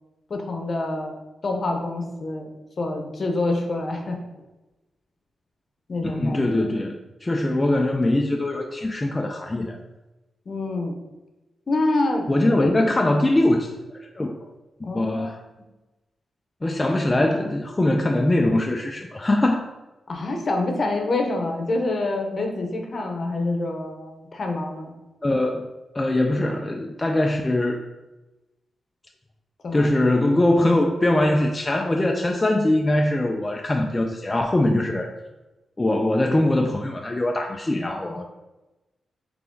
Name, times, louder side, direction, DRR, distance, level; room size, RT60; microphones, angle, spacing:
voice 1, 0.3-1.1 1.4-4.2 5.9-6.7 10.5-10.9 11.7-12.3 12.6-12.7 14.8-15.3 20.1-24.9 29.6-29.9, left 2 dB, 50° left, 3 dB, 0.7 m, -26 dB
voice 2, 6.0-6.9 7.2-9.8 12.3-14.4 14.9-15.4 16.6-19.6 25.2-25.7 25.9-27.8 29.7-35.1 35.8-38.3, left 1 dB, 20° left, 2 dB, 0.3 m, -22 dB
3.6 x 3.3 x 3.8 m, 1.1 s
cardioid pair, 90°, 0 cm